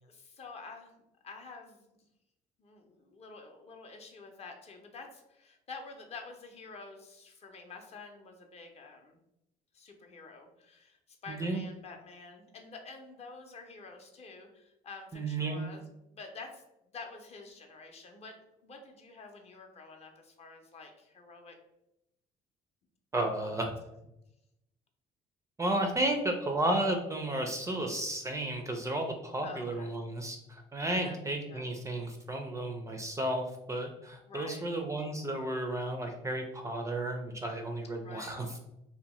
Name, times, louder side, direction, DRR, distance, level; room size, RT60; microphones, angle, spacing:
voice 1, 0.0-0.9 1.2-1.8 2.6-9.2 9.7-15.8 16.1-16.6 16.9-18.3 18.6-21.6 23.2-23.5 29.4-29.9 30.9-31.2 31.5-31.7 34.3-34.6 38.0-38.4, left 4 dB, 40° left, 3 dB, 0.5 m, -48 dB
voice 2, 11.3-11.6 15.1-15.6 23.1-23.7 25.6-38.5, right 1 dB, 20° right, 4 dB, 0.3 m, -33 dB
2.7 x 2.1 x 2.9 m, 0.86 s
cardioid pair, 110°, 17 cm